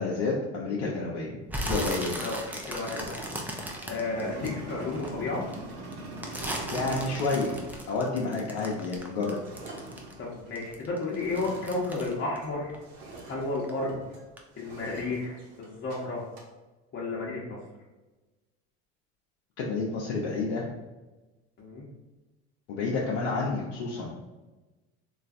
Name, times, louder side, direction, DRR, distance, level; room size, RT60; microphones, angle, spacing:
voice 1, 0.0-1.4 1.7-2.2 4.4-4.5 6.7-7.5 7.9-9.4 19.6-20.7 22.7-24.1, left 3 dB, 70° left, -4 dB, 0.7 m, -29 dB
sound 1, 1.5-5.1 5.5-10.3 10.6-13.3 13.6-13.9 14.4-14.5, right 1 dB, 5° right, 0.3 m, -36 dB
voice 2, 1.9-2.4 2.7-3.3 3.9-5.4 10.2-12.7 13.3-14.0 14.6-16.2 16.9-17.6 21.6-21.8, left 3 dB, 35° left, -4 dB, 0.8 m, -32 dB
sound 2, 2.9-12.6 12.8-14.2 14.5-16.5, right 2 dB, 70° right, 1.0 m, -43 dB
3.1 x 2.4 x 2.5 m, 1.1 s
supercardioid pair, 90°, 33 cm